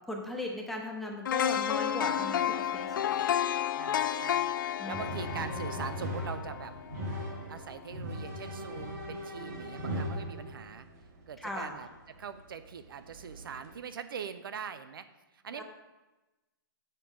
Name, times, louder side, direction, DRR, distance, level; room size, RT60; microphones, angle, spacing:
voice 1, 0.1-3.0 4.8-5.0 11.4-11.7 15.5-15.6, left 1 dB, ahead, -1 dB, 0.9 m, -37 dB
sound 1, 1.3-7.3 7.7-7.8, left 10 dB, 60° left, 0.4 m, -31 dB
voice 2, 3.7-4.5 4.8-6.7 7.5-10.9 11.3-15.1 15.3-15.6, right 7 dB, 70° right, 11 dB, 0.5 m, -42 dB
sound 2, 4.9-10.9 12.1-12.2 13.0-13.7, equal, 45° right, 1.4 m, -38 dB
7.9 x 6.6 x 3.7 m, 1.1 s
hypercardioid pair, 145°, 12 cm